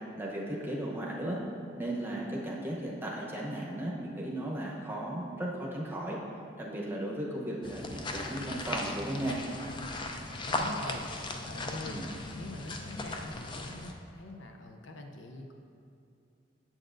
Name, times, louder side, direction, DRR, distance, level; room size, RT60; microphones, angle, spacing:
voice 1, 0.2-1.4 1.8-6.2 6.6-9.4 11.8-12.1, right 1 dB, 10° right, -3 dB, 0.8 m, -35 dB
sound 1, 7.6-13.9, left 2 dB, 25° left, 0.4 m, -37 dB
voice 2, 10.4-12.0 12.3-15.5, left 2 dB, 75° left, 3 dB, 0.6 m, -43 dB
8.6 x 7.5 x 2.6 m, 2.5 s
head